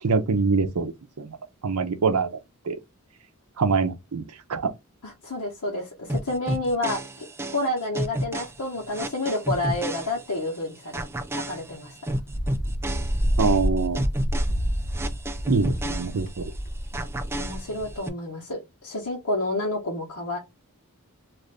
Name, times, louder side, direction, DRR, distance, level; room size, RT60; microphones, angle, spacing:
voice 1, 0.0-0.9 1.2-1.4 1.6-2.4 2.6-2.8 3.6-4.2 4.5-4.7 13.4-14.1 15.5-16.4, right 4 dB, 80° right, 0.6 m, -24 dB
voice 2, 5.0-7.0 7.5-11.0 11.3-12.0 17.4-20.4, left 2 dB, 90° left, 1.0 m, -29 dB
sound 1, 6.1-10.6 10.9-16.6 16.9-18.1, right 1 dB, 10° right, 0.3 m, -32 dB
Wind, 12.1-18.0, equal, 35° left, 1.1 m, -28 dB
2.5 x 2.5 x 3.3 m
head